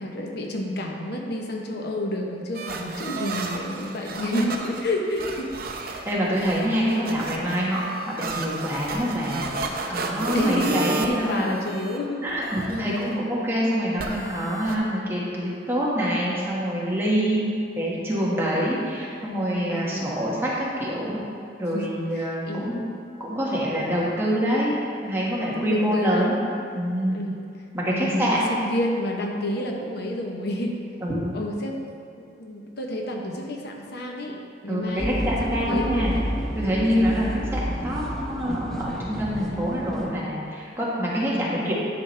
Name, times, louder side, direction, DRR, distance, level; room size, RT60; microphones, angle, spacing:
voice 1, 0.0-5.5 6.8-7.1 10.3-12.5 17.2-17.5 19.7-20.2 21.7-22.9 25.4-26.3 27.1-27.4 27.8-30.8 31.3-31.8 32.2-36.2 41.3-41.7, left 1 dB, 65° left, 1 dB, 0.9 m, -30 dB
sound 1, 2.5-12.0 12.3-13.1 14.0-14.8, right 3 dB, 55° right, 0.8 m, -33 dB
voice 2, 6.0-7.8 8.1-11.7 12.2-17.4 17.8-21.2 21.6-22.8 23.2-24.7 25.0-26.3 26.7-27.2 27.7-28.4 31.0-31.3 34.7-36.1 36.5-41.7, equal, 15° right, -7 dB, 1.6 m, -26 dB
sound 2, 35.0-40.1, equal, 5° left, 0.9 m, -30 dB
11.0 x 6.0 x 3.3 m, 2.5 s
head